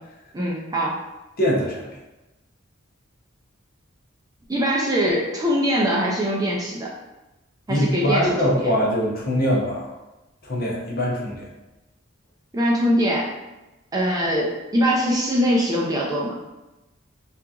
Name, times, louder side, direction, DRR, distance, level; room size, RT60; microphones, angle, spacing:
voice 1, 0.3-1.0 4.5-6.9 7.7-8.7 12.5-13.3 13.9-16.3, equal, 20° right, -3 dB, 0.3 m, -22 dB
voice 2, 1.4-1.8 7.7-9.9 10.4-11.5, equal, 45° left, -3 dB, 0.6 m, -22 dB
2.8 x 2.4 x 2.3 m, 1.0 s
head